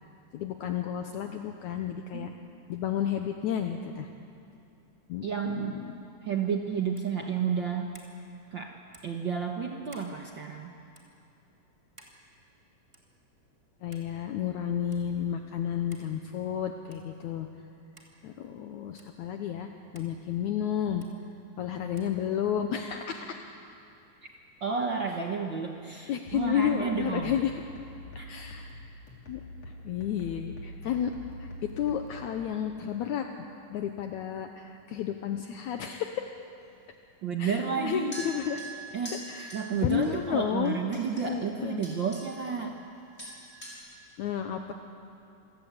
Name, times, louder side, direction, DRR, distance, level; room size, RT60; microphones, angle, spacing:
voice 1, 0.3-2.3 2.7-4.1 5.1-5.9 13.8-17.5 18.2-21.1 21.6-23.4 26.1-27.5 28.3-28.7 29.3-29.4 29.9-31.1 31.4-33.3 33.7-36.3 37.4-38.6 39.3-40.8 41.2-41.8 44.2-44.7, left 9 dB, 70° left, 5 dB, 2.0 m, -32 dB
voice 2, 2.1-2.6 5.2-5.8 6.2-8.0 8.5-8.7 9.0-10.7 24.6-27.4 28.2-28.3 37.2-38.1 38.9-39.2 39.5-42.8, right 6 dB, 75° right, 2 dB, 1.0 m, -31 dB
sound 1, 6.9-7.2 7.9-8.2 8.9-9.2 9.9-10.1 10.9-11.1 12.0-12.2 12.9-13.2 13.9-14.1 14.9-15.0 15.9-16.1 16.9-17.1 18.0-18.1 19.0-19.1 19.9-20.1 21.0-21.1 22.0-22.1, right 1 dB, 10° right, 2.0 m, -55 dB
sound 2, 26.3-32.3, left 2 dB, 50° left, 4.0 m, -45 dB
sound 3, 38.1-40.1 40.7-41.2 41.8-42.4 42.7-42.9 43.2-43.7, right 2 dB, 20° left, 5.9 m, -43 dB
27.0 x 17.0 x 8.2 m, 2.6 s
omnidirectional pair, 3.9 m